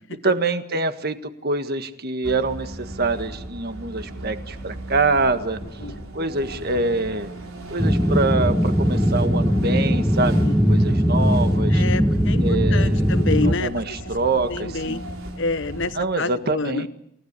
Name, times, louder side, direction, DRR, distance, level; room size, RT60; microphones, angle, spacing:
voice 1, 0.1-5.6 6.1-7.3 7.7-10.4 10.7-11.8 12.4-13.0 13.4-15.0 16.0-16.9, right 3 dB, 45° right, 9 dB, 1.6 m, -25 dB
sound 1, 2.2-15.9, right 1 dB, 75° right, 4.0 m, -36 dB
sound 2, 7.8-13.5, equal, 5° right, 1.2 m, -19 dB
voice 2, 11.7-14.0 14.5-15.0 15.4-16.9, left 3 dB, 60° left, 13 dB, 1.1 m, -28 dB
28.5 x 16.5 x 8.3 m, 0.74 s
head